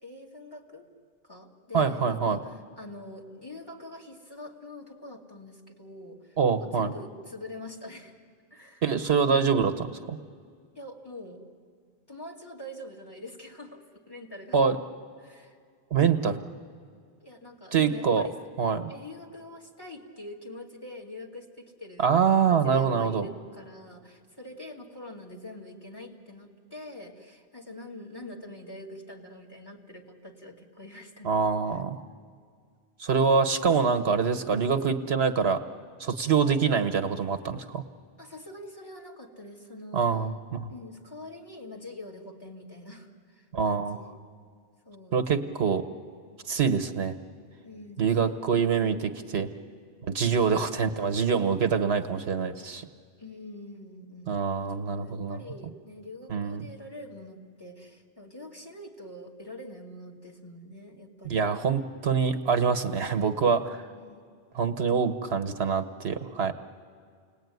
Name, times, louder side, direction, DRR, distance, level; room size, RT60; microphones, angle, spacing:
voice 1, 0.0-0.9 1.2-8.2 8.5-8.8 10.7-11.4 12.1-14.6 15.2-15.6 17.2-18.3 18.9-22.2 22.5-31.3 31.7-31.8 38.2-40.2 40.7-44.1 44.9-45.2 47.6-48.8 53.2-61.4 63.9-64.2, left 1 dB, 20° left, 0 dB, 2.4 m, -44 dB
voice 2, 1.7-2.4 6.4-6.9 8.8-10.2 14.5-14.8 15.9-16.4 17.7-18.3 18.6-18.9 22.0-23.3 31.2-32.0 33.0-35.6 36.0-37.8 39.9-40.7 43.5-44.0 45.1-45.8 46.5-47.1 48.0-49.5 50.1-52.9 54.3-55.4 56.3-56.6 61.2-63.8 64.5-66.5, right 6 dB, 70° right, 9 dB, 1.2 m, -25 dB
29.5 x 19.0 x 9.3 m, 2.1 s
omnidirectional pair, 1.1 m